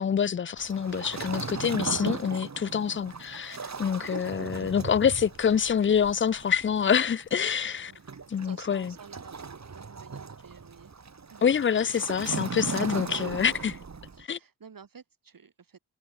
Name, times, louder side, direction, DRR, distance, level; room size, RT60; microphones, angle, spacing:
voice 1, 0.0-7.9 8.3-8.9 11.4-13.8 14.2-14.4, left 7 dB, 35° left, 0.5 m, -26 dB
Waves surf, 0.6-14.2, right 5 dB, 45° right, 2.8 m, -38 dB
voice 2, 3.9-4.5 5.0-5.2 7.9-10.9 11.3-11.5 14.1-15.8, right 6 dB, 60° right, 4.5 m, -52 dB
cardioid pair, 70°, 38 cm